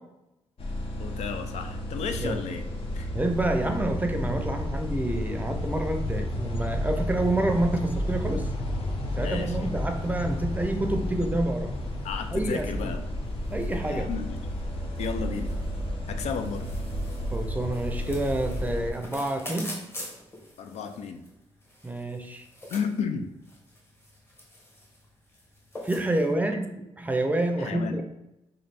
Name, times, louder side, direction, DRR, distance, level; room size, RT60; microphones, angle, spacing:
sound 1, 0.6-18.9, left 1 dB, 55° left, 0.8 m, -32 dB
voice 1, 1.0-2.6 2.9-3.1 9.2-9.7 12.0-13.0 13.8-14.4 15.0-15.6 16.1-16.7 20.6-21.3 22.7-23.3 26.5-26.6 27.6-28.0, left 6 dB, 80° left, 7 dB, 0.4 m, -33 dB
voice 2, 3.1-8.4 9.2-11.7 12.3-12.9 13.5-14.1 17.3-19.7 21.8-22.4 25.8-26.7 27.0-28.0, right 1 dB, 15° right, 5 dB, 0.5 m, -28 dB
sound 2, 11.7-26.3, left 1 dB, 20° left, 1.2 m, -46 dB
3.1 x 2.6 x 4.1 m, 0.90 s
cardioid pair, 70°, 11 cm